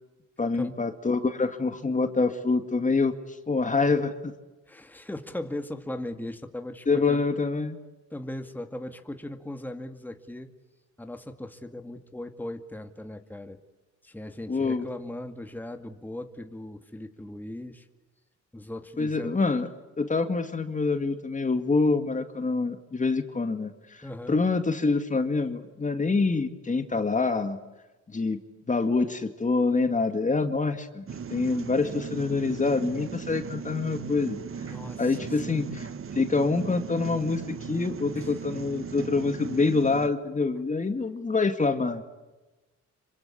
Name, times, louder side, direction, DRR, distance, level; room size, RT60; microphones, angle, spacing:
voice 1, 0.4-3.1 3.5-4.3 6.9-7.8 14.5-14.9 19.0-19.7 20.0-27.6 28.1-28.4 28.7-31.0 31.3-34.4 35.0-35.9 36.1-42.0, left 3 dB, 25° left, 8 dB, 2.1 m, -26 dB
voice 2, 4.7-7.2 8.1-10.5 11.0-13.6 14.0-17.9 18.5-19.4 24.0-24.4 34.7-35.7 38.1-38.3, left 1 dB, 5° left, 6 dB, 2.1 m, -38 dB
sound 1, 31.1-40.1, right 6 dB, 45° right, 2.0 m, -37 dB
27.0 x 24.5 x 8.5 m, 1.1 s
cardioid pair, 90°, 30 cm